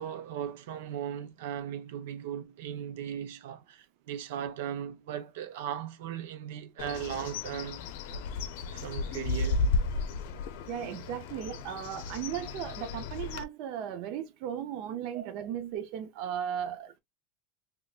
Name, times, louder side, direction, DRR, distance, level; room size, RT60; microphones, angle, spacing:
voice 1, 0.0-8.2 8.7-9.6 15.1-15.3, right 9 dB, 80° right, 0.7 m, -38 dB
Bird, 6.8-13.4, left 4 dB, 65° left, 0.6 m, -34 dB
voice 2, 10.7-17.0, right 9 dB, 45° right, 0.6 m, -36 dB
3.6 x 3.0 x 2.4 m
supercardioid pair, 170°, 0 cm